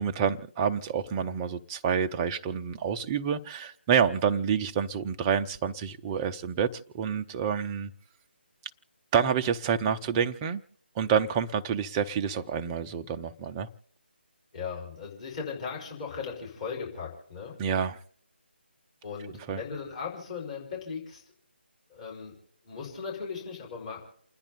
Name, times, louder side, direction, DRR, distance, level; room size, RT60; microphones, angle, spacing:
voice 1, 0.0-7.9 9.1-10.6 11.0-13.7 17.6-18.0 19.5-19.6, right 7 dB, 15° right, 0.6 m, -28 dB
voice 2, 14.5-17.6 19.0-21.2 21.9-22.3 22.6-24.1, left 5 dB, 35° left, 5.3 m, -37 dB
29.0 x 10.0 x 4.2 m
figure-of-eight pair, 150°, 6 cm